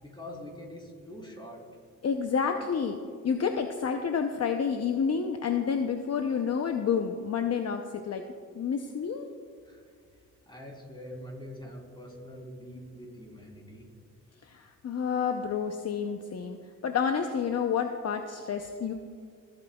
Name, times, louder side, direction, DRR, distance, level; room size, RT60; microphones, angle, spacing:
voice 1, 0.0-1.6 9.6-9.8 10.5-13.9, left 1 dB, 15° left, -1 dB, 3.5 m, -44 dB
voice 2, 2.0-3.0 3.2-8.2 8.5-9.3 14.5-16.6 16.8-18.9, left 6 dB, 50° left, 5 dB, 0.7 m, -29 dB
26.5 x 8.8 x 2.3 m, 2.1 s
cardioid pair, 90°, 33 cm